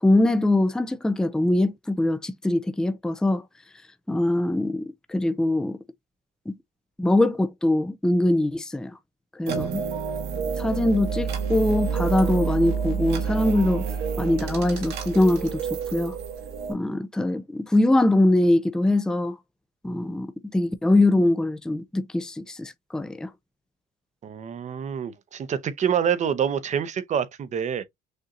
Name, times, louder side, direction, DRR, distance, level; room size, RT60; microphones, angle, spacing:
voice 1, 0.0-3.4 4.1-5.8 6.5-6.6 7.0-8.9 9.4-9.8 10.6-13.8 14.2-15.6 15.9-16.2 16.7-19.4 19.8-23.3, left 1 dB, 5° left, 0.4 m, -22 dB
sound 1, 9.5-16.7, right 6 dB, 80° right, 1.6 m, -28 dB
voice 2, 24.2-27.8, right 8 dB, 45° right, 0.8 m, -26 dB
6.5 x 2.7 x 2.5 m
cardioid pair, 110°, 17 cm